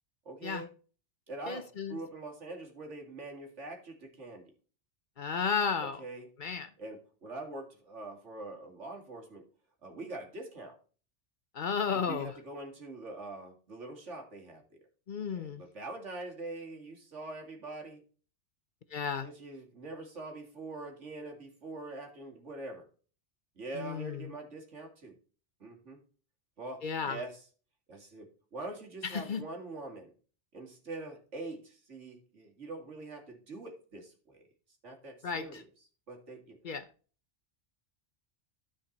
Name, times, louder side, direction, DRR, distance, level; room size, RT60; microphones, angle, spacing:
voice 1, 0.2-0.7 1.3-4.5 5.8-6.3 6.8-9.5 9.8-10.8 11.9-14.6 15.3-18.0 19.2-22.9 23.6-25.2 25.6-26.0 26.6-27.5 27.9-30.1 30.5-34.4 34.8-35.7 36.1-36.6, right 2 dB, 85° right, 2.6 m, -44 dB
voice 2, 1.5-2.0 5.2-6.0 6.4-6.7 11.5-12.3 15.1-15.6 18.9-19.3 23.8-24.2 26.8-27.2 29.0-29.4 35.2-35.6 36.6-36.9, left 6 dB, 50° left, 0.7 m, -33 dB
13.0 x 5.1 x 4.1 m
omnidirectional pair, 1.2 m